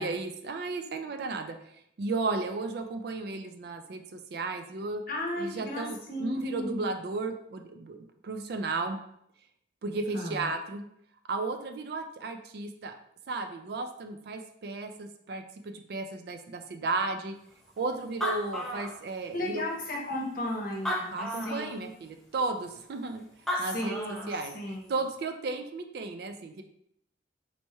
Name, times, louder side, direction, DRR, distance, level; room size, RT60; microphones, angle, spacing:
voice 1, 0.0-1.6 2.0-5.0 5.4-8.0 8.2-9.0 9.8-10.8 11.3-12.9 13.3-17.3 17.8-19.6 21.1-23.2 23.6-24.0 24.3-24.5 24.9-26.6, right 3 dB, 60° right, 6 dB, 0.3 m, -34 dB
voice 2, 5.1-7.0 10.1-10.5 19.3-21.9 23.6-24.9, left 1 dB, 50° left, -1 dB, 0.8 m, -35 dB
Animal, 17.8-17.9 18.0-19.5 20.1-20.2 20.7-21.7 23.2-23.3 23.5-24.4, left 1 dB, ahead, 0.4 m, -33 dB
4.1 x 3.1 x 2.2 m, 0.72 s
head